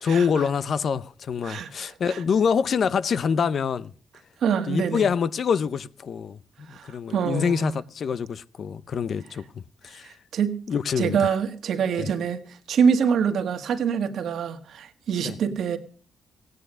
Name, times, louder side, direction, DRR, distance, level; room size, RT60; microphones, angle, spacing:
voice 1, 0.0-3.9 4.7-10.2 10.7-11.3 12.0-12.1 15.2-15.4, left 6 dB, 60° left, 0.7 m, -26 dB
voice 2, 1.4-2.2 4.4-5.0 6.7-7.7 10.3-10.5 11.0-12.4 12.7-15.8, right 7 dB, 75° right, 1.7 m, -25 dB
16.5 x 9.5 x 6.2 m
cardioid pair, 90°, 0 cm